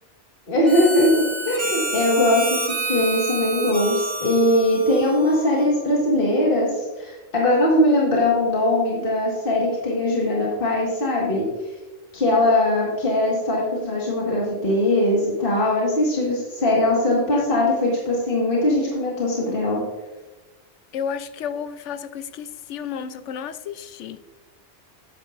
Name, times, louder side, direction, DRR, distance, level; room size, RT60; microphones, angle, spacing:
voice 1, 0.5-11.5 12.1-19.8, left 1 dB, 45° left, -4 dB, 2.0 m, -21 dB
Harmonica, 0.7-5.8, right 2 dB, 20° right, 1.5 m, -29 dB
voice 2, 20.9-24.2, left 7 dB, 75° left, 12 dB, 0.9 m, -32 dB
12.0 x 9.3 x 2.6 m, 1.1 s
omnidirectional pair, 1.3 m